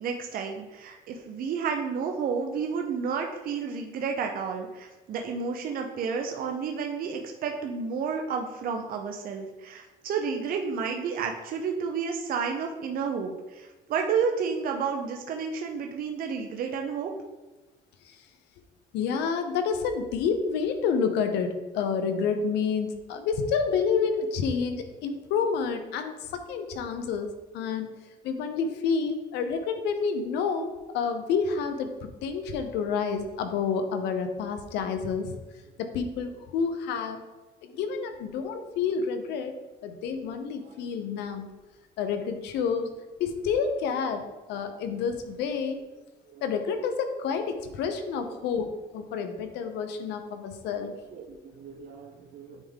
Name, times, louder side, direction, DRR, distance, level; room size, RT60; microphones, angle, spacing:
voice 1, 0.0-17.1 44.9-45.0 46.3-46.4 48.2-48.4 51.1-52.6, right 6 dB, 60° right, 3 dB, 0.7 m, -31 dB
voice 2, 18.9-26.1 26.5-27.9 28.2-35.4 35.8-37.2 37.6-39.5 39.8-41.5 42.0-42.9 43.2-45.8 46.4-50.9, left 5 dB, 85° left, 7 dB, 0.8 m, -29 dB
8.9 x 3.6 x 3.6 m, 1.1 s
cardioid pair, 110°, 17 cm